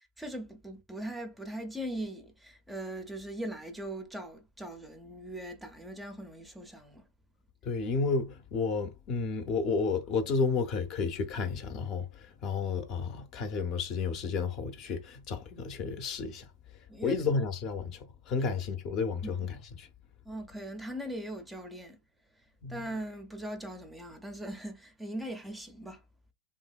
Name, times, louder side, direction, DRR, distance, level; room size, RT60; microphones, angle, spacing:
voice 1, 0.2-7.1 16.9-17.2 19.2-19.4 20.2-22.0 22.7-26.0, right 1 dB, 5° right, 0.5 m, -40 dB
voice 2, 7.6-16.5 17.0-19.9 22.6-22.9, left 4 dB, 40° left, 0.6 m, -32 dB
2.8 x 2.6 x 2.3 m
hypercardioid pair, 125°, 0 cm